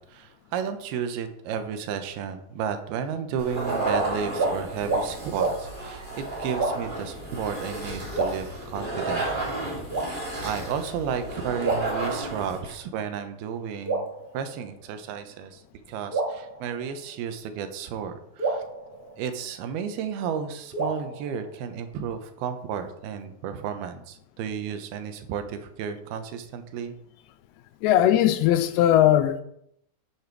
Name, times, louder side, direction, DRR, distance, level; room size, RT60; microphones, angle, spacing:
voice 1, 0.1-9.5 10.1-15.6 15.9-18.6 19.2-26.9, right 7 dB, 85° right, 2.8 m, -33 dB
sound 1, 3.4-12.7, right 2 dB, 15° right, 2.5 m, -32 dB
sound 2, 3.8-4.0 4.3-4.5 4.8-5.0 5.4-5.6 6.5-7.0 8.1-9.0 9.9-10.6 11.6-12.6 13.8-15.0 16.1-17.3 18.4-19.8 20.7-21.9, right 3 dB, 40° right, 0.8 m, -30 dB
voice 2, 27.8-29.4, left 12 dB, 85° left, 2.7 m, -19 dB
9.3 x 7.0 x 4.6 m
omnidirectional pair, 4.4 m